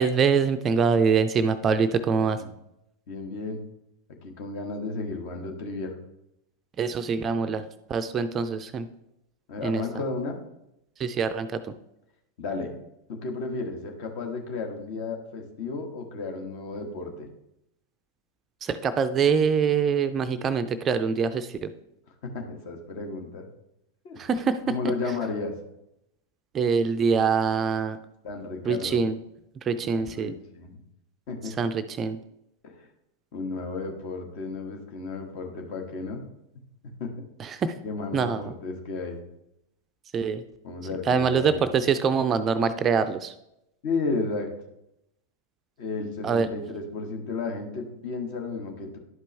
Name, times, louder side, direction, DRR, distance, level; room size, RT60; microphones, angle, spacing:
voice 1, 0.0-2.4 6.8-8.9 9.6-9.8 11.0-11.8 18.6-21.7 24.2-24.8 26.5-28.0 28.7-29.2 29.6-30.3 31.6-32.2 37.4-37.7 38.1-38.5 40.1-40.4 41.1-43.3 46.2-46.5, right 5 dB, 25° right, 11 dB, 0.4 m, -24 dB
voice 2, 3.1-3.6 4.2-5.9 9.5-10.3 12.4-12.7 13.1-17.3 22.2-23.4 24.0-24.2 24.7-25.5 28.2-29.0 29.9-30.8 31.3-31.5 32.6-32.9 33.3-36.2 37.0-37.1 37.8-39.2 40.6-41.7 43.8-44.5 45.8-49.0, left 3 dB, 45° left, 3 dB, 1.4 m, -33 dB
11.0 x 5.2 x 3.3 m, 0.84 s
figure-of-eight pair, 90°, 0 cm